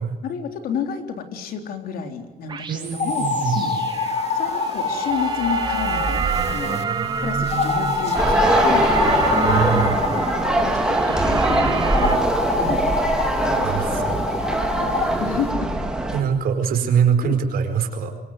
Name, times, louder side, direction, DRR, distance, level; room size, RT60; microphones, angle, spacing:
voice 1, 0.2-3.7 4.3-6.8 7.2-9.0 9.8-10.0 10.6-12.2 12.6-12.8 13.4-14.4 14.8-15.7 17.2-17.4, left 6 dB, 75° left, 6 dB, 3.9 m, -31 dB
sound 1, 2.5-12.2, right 5 dB, 30° right, 2.1 m, -28 dB
voice 2, 2.7-3.6 9.4-9.9 13.6-14.3 16.1-18.1, right 7 dB, 75° right, 6 dB, 4.7 m, -23 dB
sound 2, 2.9-6.8 7.5-10.8 11.9-15.1, left 4 dB, 45° left, 2.3 m, -25 dB
sound 3, 8.2-16.2, right 2 dB, 5° right, 3.0 m, -22 dB
26.5 x 24.5 x 8.1 m, 1.1 s
cardioid pair, 165°, 15 cm